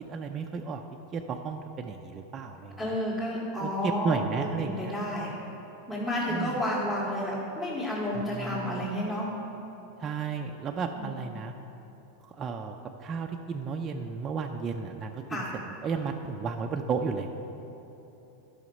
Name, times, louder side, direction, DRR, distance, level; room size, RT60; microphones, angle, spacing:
voice 1, 0.1-0.8 1.1-3.0 3.6-4.9 6.3-6.6 8.1-8.9 10.0-11.5 12.2-15.4 15.8-17.3, right 5 dB, 30° right, 2 dB, 0.5 m, -33 dB
voice 2, 2.8-5.4 5.9-9.3 10.9-11.1 15.3-15.5, left 1 dB, 25° left, -10 dB, 2.3 m, -31 dB
11.0 x 5.8 x 5.3 m, 3.0 s
hypercardioid pair, 115°, 0 cm